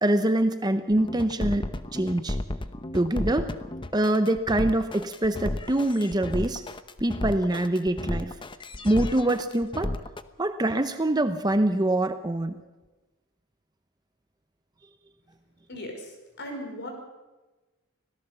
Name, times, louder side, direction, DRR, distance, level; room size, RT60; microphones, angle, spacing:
voice 1, 0.0-2.4 2.9-3.5 3.9-6.6 7.0-8.3 8.8-9.9 10.4-12.6, right 1 dB, 20° right, 9 dB, 0.8 m, -24 dB
sound 1, 0.9-10.2, left 1 dB, 20° left, 0.8 m, -32 dB
voice 2, 15.7-16.1 16.4-16.9, left 1 dB, 50° left, 3 dB, 5.6 m, -37 dB
25.0 x 17.5 x 6.9 m, 1.2 s
head